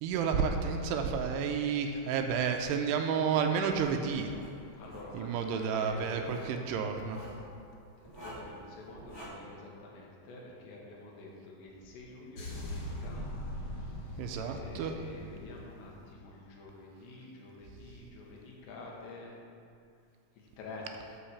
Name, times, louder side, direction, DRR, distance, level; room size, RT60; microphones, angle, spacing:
voice 1, 0.0-4.3 5.1-7.2 14.2-15.0, right 6 dB, 80° right, 4 dB, 2.5 m, -31 dB
Writing, 3.7-3.9 4.3-5.1 6.1-6.5 7.0-7.4 8.0-8.5 9.0-9.3, right 1 dB, 25° left, 0.9 m, -48 dB
voice 2, 4.8-6.4 8.0-13.3 13.7-14.2 14.4-19.3 20.4-20.9, left 3 dB, 75° left, -2 dB, 3.4 m, -48 dB
sound 1, 12.4-16.4, left 1 dB, 55° left, 1.7 m, -41 dB
10.5 x 4.8 x 7.0 m, 2.4 s
omnidirectional pair, 5.2 m